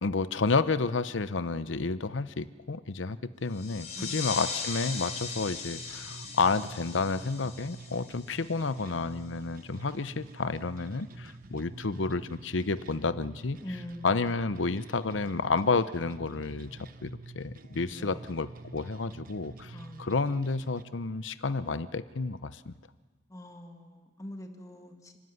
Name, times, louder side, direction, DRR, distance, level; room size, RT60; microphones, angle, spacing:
voice 1, 0.0-13.6 14.0-22.7, left 4 dB, 85° left, 14 dB, 0.8 m, -30 dB
sound 1, 3.5-8.8, left 5 dB, 40° left, 4.9 m, -39 dB
sound 2, 4.8-20.8, right 3 dB, 50° right, 0.9 m, -48 dB
voice 2, 13.6-14.3 17.9-18.2 19.7-20.2 23.3-25.2, left 1 dB, 20° left, 4 dB, 1.8 m, -44 dB
29.5 x 13.0 x 9.5 m, 1.4 s
head